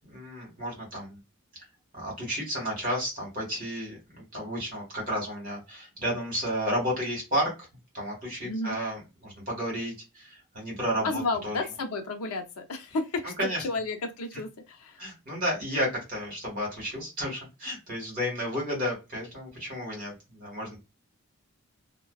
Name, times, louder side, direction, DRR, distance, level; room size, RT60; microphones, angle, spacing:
voice 1, 0.1-1.2 1.9-7.5 7.9-11.6 13.4-13.6 15.0-20.8, equal, 40° right, 1.4 m, -32 dB
voice 2, 8.4-8.8 11.0-15.0, left 3 dB, 80° left, 0.5 m, -32 dB
2.6 x 2.1 x 2.2 m
head